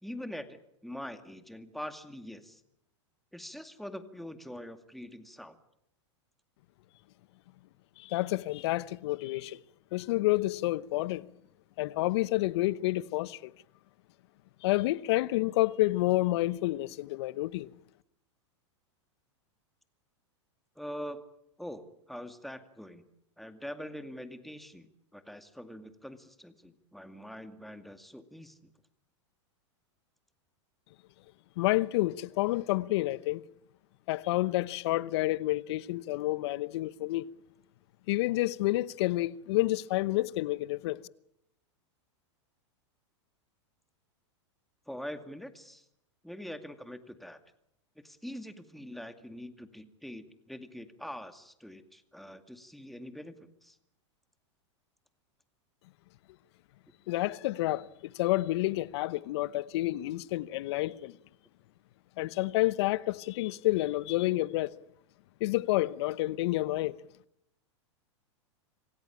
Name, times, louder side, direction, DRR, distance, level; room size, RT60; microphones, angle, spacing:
voice 1, 0.0-2.6 3.3-5.6 20.8-21.2 21.6-23.1 23.4-28.6 44.9-45.8 46.2-47.4 48.0-53.8, equal, ahead, 2.2 m, -44 dB
voice 2, 8.0-9.6 9.9-11.2 11.8-13.5 14.6-17.7 31.6-33.4 34.1-37.3 38.1-41.0 57.1-61.1 62.2-64.7 65.4-66.9, left 18 dB, 60° left, 1.0 m, -29 dB
26.5 x 17.0 x 8.8 m
hypercardioid pair, 110°, 15 cm